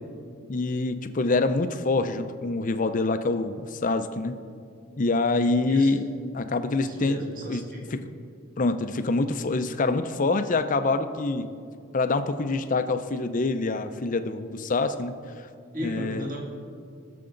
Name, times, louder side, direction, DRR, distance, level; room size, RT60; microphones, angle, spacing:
voice 1, 0.5-4.4 5.0-6.0 6.3-7.6 7.9-8.0 8.6-11.5 11.9-15.1 15.8-16.3, left 3 dB, 35° left, 9 dB, 0.5 m, -25 dB
voice 2, 5.6-5.9 6.8-8.0 15.7-16.4, equal, 40° right, -1 dB, 1.6 m, -35 dB
19.0 x 6.8 x 3.9 m, 2.3 s
head